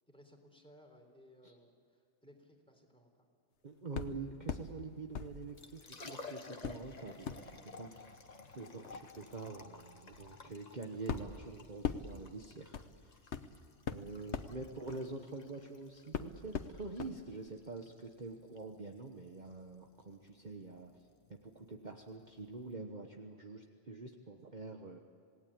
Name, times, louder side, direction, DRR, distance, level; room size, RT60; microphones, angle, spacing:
voice 1, 0.1-3.3 14.1-14.6, equal, 5° left, 3 dB, 3.8 m, -62 dB
voice 2, 3.6-8.1 8.5-12.7 13.0-13.2 13.9-20.9 21.3-25.0, right 3 dB, 40° right, 3 dB, 1.3 m, -46 dB
sound 1, 3.9-4.7 5.1-6.1 6.6-15.7 16.1-17.1 17.5-17.6, left 6 dB, 65° left, 1.3 m, -43 dB
Liquid, 5.5-22.7, left 3 dB, 35° left, 1.4 m, -55 dB
27.5 x 18.5 x 8.8 m, 2.5 s
omnidirectional pair, 1.3 m